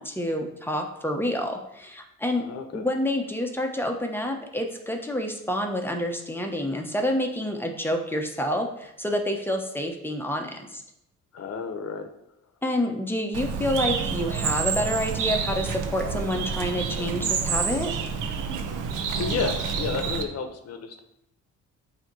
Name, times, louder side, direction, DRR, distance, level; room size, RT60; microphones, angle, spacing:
voice 1, 0.0-2.5 2.7-10.8 12.6-17.9, left 1 dB, 5° left, 3 dB, 1.0 m, -28 dB
voice 2, 2.4-2.8 11.3-12.1 19.2-21.0, left 5 dB, 55° left, 6 dB, 0.9 m, -31 dB
Bird, 13.3-20.2, right 6 dB, 90° right, 0.7 m, -28 dB
7.7 x 3.0 x 4.7 m, 0.80 s
cardioid pair, 90°, 30 cm